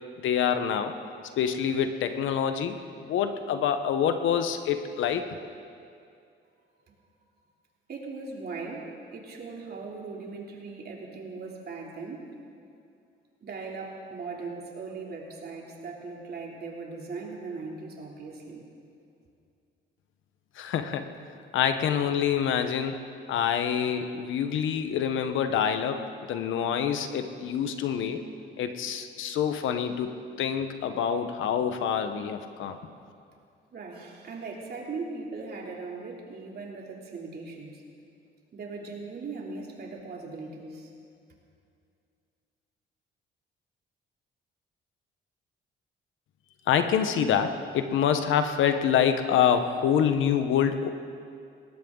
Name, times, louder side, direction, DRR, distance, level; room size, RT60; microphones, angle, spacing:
voice 1, 0.2-0.9 1.4-5.2 20.6-21.1 21.5-28.2 28.6-30.1 30.4-32.8 46.7-50.9, left 8 dB, 80° left, 8 dB, 1.1 m, -26 dB
voice 2, 7.9-12.3 13.4-18.6 33.7-37.8 38.5-40.9, right 4 dB, 55° right, -1 dB, 3.1 m, -39 dB
20.0 x 17.5 x 3.9 m, 2.4 s
cardioid pair, 90°, 20 cm